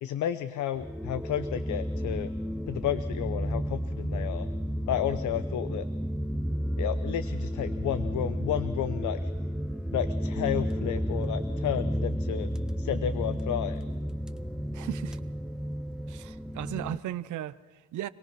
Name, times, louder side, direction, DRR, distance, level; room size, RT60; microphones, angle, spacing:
voice 1, 0.0-2.3 2.7-4.5 4.9-5.8 6.8-9.2 9.9-12.5 12.8-13.8, left 11 dB, 75° left, 13 dB, 0.8 m, -32 dB
sound 1, 0.7-17.0, equal, ahead, 0.8 m, -32 dB
voice 2, 14.7-15.2 16.1-18.1, right 13 dB, 75° right, 16 dB, 0.8 m, -36 dB
26.5 x 18.0 x 6.0 m, 1.3 s
cardioid pair, 90°, 30 cm